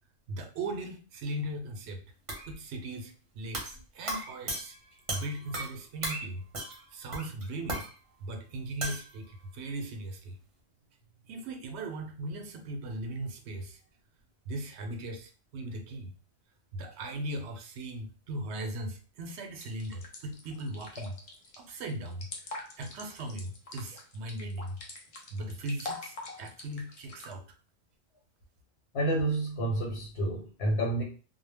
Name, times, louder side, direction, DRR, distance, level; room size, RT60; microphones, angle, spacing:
voice 1, 0.3-2.0 2.5-4.7 5.1-6.4 6.7-7.8 8.2-10.4 11.3-13.8 14.5-16.1 16.7-21.2 21.6-24.8 25.3-27.5, right 1 dB, 80° right, 5 dB, 0.9 m, -38 dB
sound 1, 2.3-2.5 3.5-3.8 4.1-5.8 6.0-6.3 6.5-6.9 7.1-7.9 8.8-9.1, right 1 dB, 35° right, 0.7 m, -36 dB
sound 2, 19.6-27.3, left 3 dB, 50° left, 0.4 m, -44 dB
voice 2, 28.9-31.0, right 1 dB, 75° left, -2 dB, 1.0 m, -29 dB
2.1 x 2.1 x 3.3 m, 0.38 s
omnidirectional pair, 1.1 m